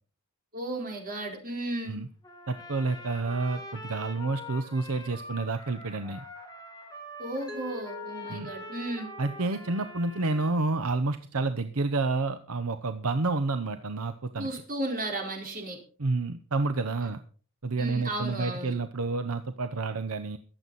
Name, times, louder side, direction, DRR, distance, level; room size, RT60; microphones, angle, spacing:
voice 1, 0.5-2.0 7.2-9.1 14.4-15.8 17.8-18.8, right 1 dB, 40° right, 2 dB, 4.4 m, -34 dB
Trumpet, 2.2-10.6, left 1 dB, 20° left, 2.7 m, -44 dB
voice 2, 2.5-6.2 8.3-8.5 9.2-14.5 16.0-17.2 17.6-20.4, right 3 dB, 70° right, 9 dB, 0.9 m, -29 dB
Mallet percussion, 7.5-10.4, left 1 dB, 5° right, 1.2 m, -45 dB
23.0 x 8.0 x 4.1 m, 0.40 s
head